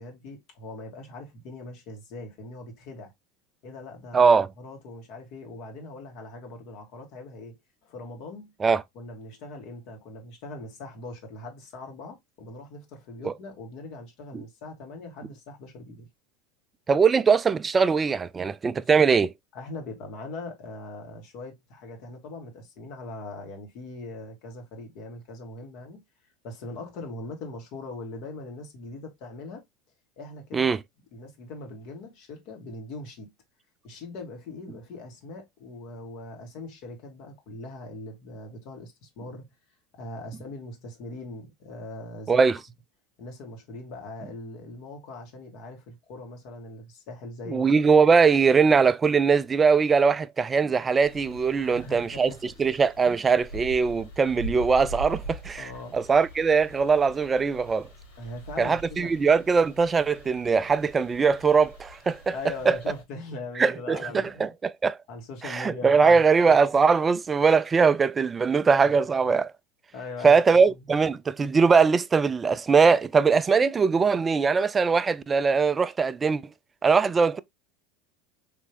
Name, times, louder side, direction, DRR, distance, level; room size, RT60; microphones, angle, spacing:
voice 1, 0.0-3.1 3.6-7.6 7.8-8.5 8.9-16.1 18.7-18.9 19.5-26.0 26.4-29.6 30.2-30.8 31.1-33.3 33.8-39.5 39.9-42.4 43.2-47.9 51.6-52.4 53.0-53.3 55.6-56.0 58.2-59.1 62.3-64.5 65.1-66.2 69.9-70.4 70.7-70.8, left 2 dB, 60° left, 1.5 m, -41 dB
voice 2, 4.1-4.5 8.6-8.8 13.2-13.3 14.3-14.4 16.9-19.3 30.5-30.8 42.3-42.6 47.5-57.9 58.6-62.3 62.7-62.8 63.6-65.0 65.4-69.5 70.2-76.4 76.8-77.4, right 5 dB, 25° right, 0.3 m, -21 dB
sound 1, 51.0-63.0, right 1 dB, 85° left, 1.9 m, -43 dB
3.5 x 2.9 x 2.8 m
hypercardioid pair, 90°, 0 cm